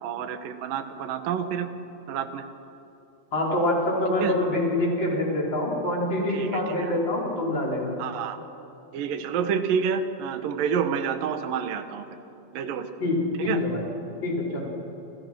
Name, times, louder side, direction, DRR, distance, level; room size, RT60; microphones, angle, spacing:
voice 1, 0.0-1.7 2.1-2.4 4.2-4.3 6.3-6.9 8.0-8.4 8.9-12.1 12.5-12.9 13.4-13.6, right 7 dB, 65° right, 9 dB, 2.6 m, -28 dB
voice 2, 3.3-8.0 13.0-13.8 14.2-14.7, left 1 dB, 25° left, -2 dB, 5.3 m, -25 dB
30.0 x 26.5 x 6.2 m, 3.0 s
omnidirectional pair, 5.0 m